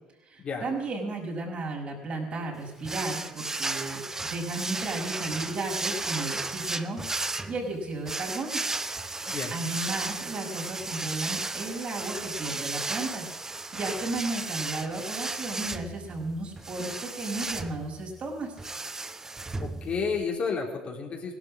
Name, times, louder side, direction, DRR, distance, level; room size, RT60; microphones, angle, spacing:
voice 1, 0.3-7.0 7.5-8.6 9.5-18.5, right 2 dB, 45° right, 0 dB, 5.9 m, -34 dB
sound 1, 2.8-20.2, right 3 dB, 20° right, 1.1 m, -34 dB
voice 2, 19.6-21.4, left 5 dB, 45° left, 1 dB, 3.9 m, -31 dB
17.0 x 12.5 x 6.4 m, 1.1 s
hypercardioid pair, 70°, 3 cm